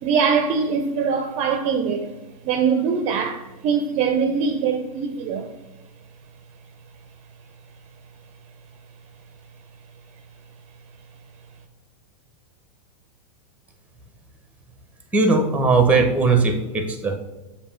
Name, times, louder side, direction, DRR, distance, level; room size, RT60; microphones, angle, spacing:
voice 1, 0.0-2.1 2.4-5.5, right 6 dB, 35° right, 0.5 m, -22 dB
voice 2, 15.1-17.2, right 3 dB, 5° right, 0.9 m, -18 dB
6.8 x 2.8 x 4.9 m
hypercardioid pair, 120°, 18 cm